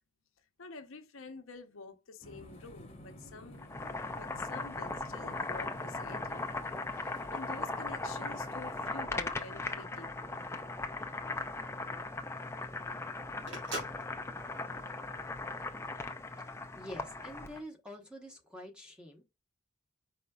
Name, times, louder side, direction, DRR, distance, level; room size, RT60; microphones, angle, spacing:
voice 1, 0.6-3.6 3.9-6.5 6.9-10.3, left 3 dB, 75° left, 0.8 m, -49 dB
sound 1, 2.2-8.8, left 1 dB, 30° left, 1.0 m, -52 dB
Boiling, 3.5-17.6, left 3 dB, 15° left, 0.4 m, -38 dB
Telephone, 10.6-15.8, right 1 dB, 65° right, 1.9 m, -45 dB
voice 2, 16.4-19.2, equal, 5° right, 1.0 m, -47 dB
5.1 x 4.1 x 2.3 m
head